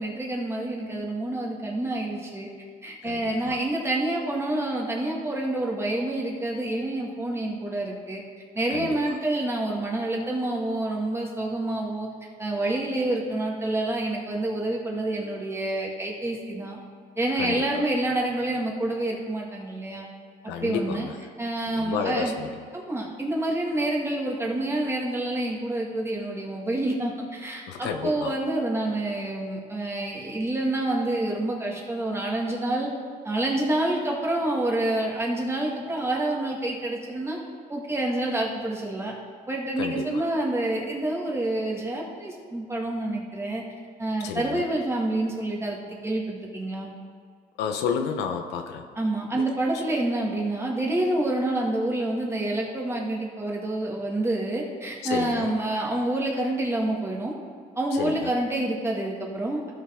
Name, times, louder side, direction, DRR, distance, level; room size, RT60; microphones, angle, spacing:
voice 1, 0.0-2.5 2.8-8.2 8.5-12.1 12.4-16.8 17.2-20.1 20.6-21.1 21.4-22.3 22.7-32.9 33.2-37.4 37.7-39.1 39.5-43.6 44.0-46.9 49.0-57.3 57.8-59.7, right 1 dB, 15° right, -2 dB, 1.8 m, -28 dB
voice 2, 3.0-3.6 8.7-9.0 17.4-17.6 20.5-21.1 21.7-22.5 27.7-28.4 39.8-40.3 44.2-44.6 47.6-48.9 49.4-49.5 55.0-55.5 57.9-58.3, left 6 dB, 85° left, 5 dB, 0.9 m, -31 dB
15.0 x 5.6 x 3.6 m, 2.1 s
cardioid pair, 110°, 17 cm